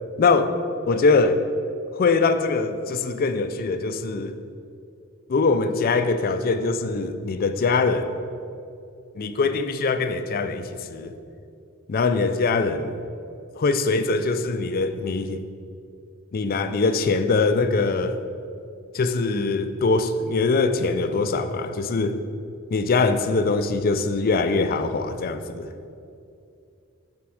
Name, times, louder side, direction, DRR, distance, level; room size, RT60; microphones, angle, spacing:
voice 1, 0.2-0.5 0.9-1.4 2.0-4.3 5.3-8.1 9.2-11.1 11.9-12.9 13.6-15.4 16.3-18.2 18.9-22.2 22.7-25.7, left 3 dB, 45° left, 9 dB, 0.4 m, -22 dB
5.9 x 4.5 x 6.3 m, 2.5 s
head